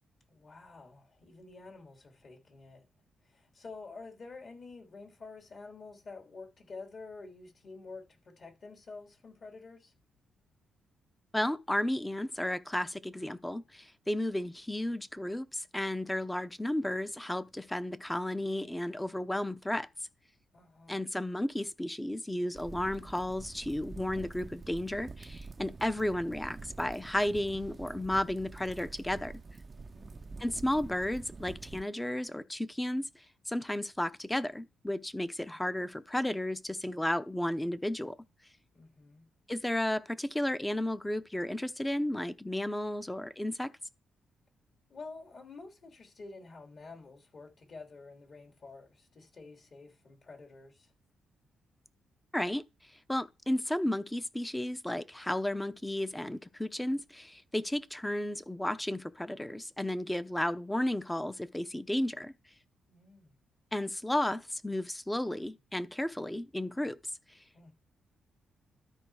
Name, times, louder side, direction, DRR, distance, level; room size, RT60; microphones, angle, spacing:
voice 1, 0.3-2.8 3.2-9.9 20.5-21.1 29.9-30.4 35.5-35.6 38.7-39.3 44.9-50.9 62.9-63.4 67.5-67.7, left 3 dB, 50° left, 3.0 m, -49 dB
voice 2, 11.3-19.9 20.9-29.4 30.4-33.1 33.5-38.2 39.5-43.7 52.3-52.6 53.1-62.3 63.7-67.0, left 1 dB, 10° left, 0.7 m, -33 dB
sound 1, 22.6-31.8, right 4 dB, 30° right, 0.5 m, -47 dB
12.5 x 4.3 x 4.8 m
cardioid pair, 100°, 0 cm